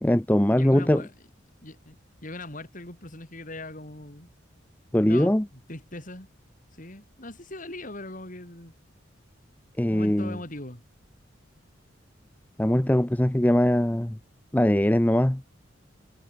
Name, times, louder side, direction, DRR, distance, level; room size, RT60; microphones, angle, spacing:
voice 1, 0.0-1.0 4.9-5.5 9.8-10.4 12.6-14.2 14.5-15.4, left 1 dB, 10° left, 0.6 m, -21 dB
voice 2, 0.5-1.1 1.6-2.0 2.2-4.3 5.0-6.3 6.8-8.7 9.9-10.8, left 2 dB, 40° left, 4.3 m, -40 dB
head